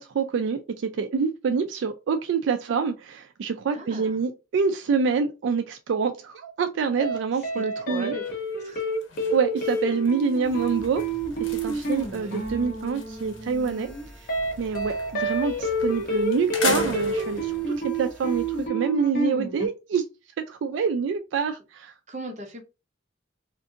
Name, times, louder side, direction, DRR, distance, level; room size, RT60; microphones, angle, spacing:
voice 1, 0.0-8.1 9.3-11.0 11.4-13.9 14.6-20.0 20.5-21.9, right 5 dB, 70° right, 0.3 m, -26 dB
voice 2, 3.7-4.2 7.3-8.2 8.6-8.9 12.1-12.4 22.1-22.6, right 1 dB, 35° right, 0.7 m, -39 dB
sound 1, 7.0-7.2 7.4-19.7, right 2 dB, 50° left, 0.9 m, -28 dB
sound 2, 8.2-8.5 8.8-13.8 14.1-15.3 15.8-15.9 16.3-17.7, left 4 dB, 90° left, 0.8 m, -36 dB
sound 3, 10.4-18.7, right 1 dB, 5° left, 1.6 m, -47 dB
2.6 x 2.5 x 3.6 m
head